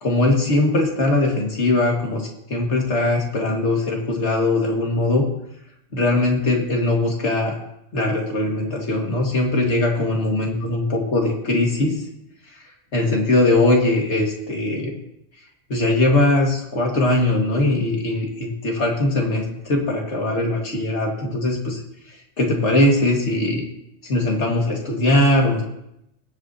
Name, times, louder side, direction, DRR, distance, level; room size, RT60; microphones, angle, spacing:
voice 1, 0.0-5.2 5.9-7.5 7.9-11.9 12.9-14.9 15.7-21.8 22.4-23.6 24.0-25.6, left 2 dB, 70° left, 0 dB, 2.3 m, -20 dB
20.5 x 7.9 x 2.8 m, 0.79 s
omnidirectional pair, 1.2 m